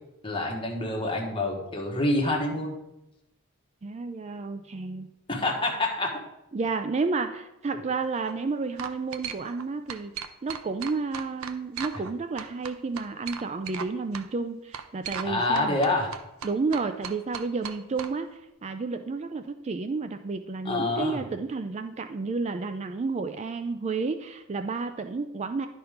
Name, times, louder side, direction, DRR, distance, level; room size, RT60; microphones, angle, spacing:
voice 1, 0.2-2.7 5.3-6.2 7.7-7.8 15.2-16.1 20.6-21.3, left 2 dB, 25° left, -1 dB, 1.5 m, -27 dB
voice 2, 3.8-5.1 6.5-15.8 16.4-25.7, right 4 dB, 30° right, 8 dB, 0.4 m, -31 dB
sound 1, 8.0-8.3 8.8-9.6 9.9-12.1 12.4-13.9 14.1-14.3 14.7-15.3 15.5-18.1, right 7 dB, 85° right, 0.6 m, -37 dB
10.5 x 4.4 x 5.1 m, 0.89 s
head